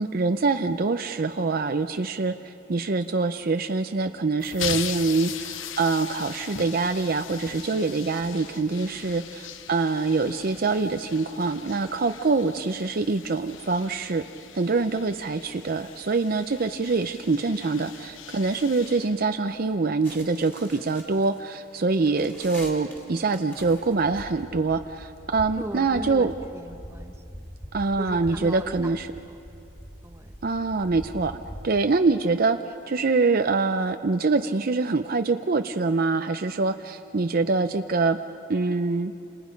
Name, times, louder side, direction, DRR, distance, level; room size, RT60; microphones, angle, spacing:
voice 1, 0.0-14.2 14.5-26.3 27.7-29.1 30.4-31.4 31.6-32.6 32.9-38.2 38.5-39.1, right 3 dB, 45° right, 8 dB, 0.6 m, -25 dB
sound 1, 4.4-19.8, left 9 dB, 70° left, 0.8 m, -40 dB
sound 2, 20.0-31.6, equal, 10° left, 2.8 m, -44 dB
voice 2, 25.6-27.1 28.0-29.4 30.0-30.3, right 1 dB, 15° right, 5 dB, 1.1 m, -38 dB
29.0 x 27.5 x 5.2 m, 2.6 s
head